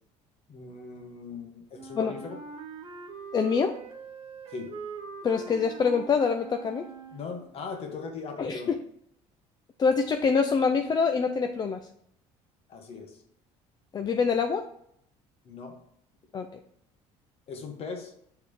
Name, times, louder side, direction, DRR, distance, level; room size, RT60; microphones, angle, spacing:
voice 1, 0.5-2.4 4.5-4.7 7.1-8.7 12.7-13.2 15.4-15.8 17.5-18.1, left 4 dB, 50° left, 3 dB, 1.4 m, -39 dB
Wind instrument woodwind instrument, 1.7-7.6, right 5 dB, 45° right, 1.0 m, -42 dB
voice 2, 3.3-3.8 5.2-6.9 8.4-8.8 9.8-11.8 13.9-14.7 16.3-16.6, left 5 dB, 30° left, 6 dB, 0.5 m, -25 dB
6.8 x 3.6 x 4.9 m, 0.71 s
cardioid pair, 110°, 13 cm